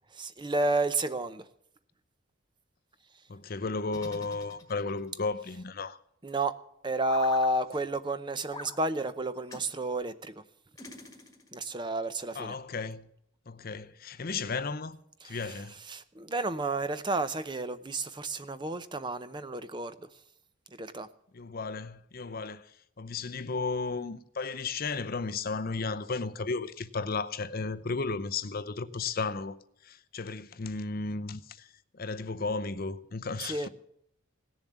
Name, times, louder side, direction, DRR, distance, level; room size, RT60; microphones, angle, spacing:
voice 1, 0.1-1.5 6.2-6.6 6.8-10.4 11.5-12.6 15.2-20.1 20.7-21.1 33.4-33.7, right 2 dB, 20° right, 0.6 m, -31 dB
voice 2, 3.3-6.0 12.3-13.1 13.5-15.0 15.2-15.7 21.3-29.6 29.8-31.7 31.9-33.7, left 4 dB, 45° left, 0.6 m, -34 dB
sound 1, 3.9-5.1 7.0-7.5 8.5-8.8 9.5-9.7 10.8-11.6, left 3 dB, 15° left, 1.4 m, -45 dB
17.5 x 7.1 x 9.3 m
head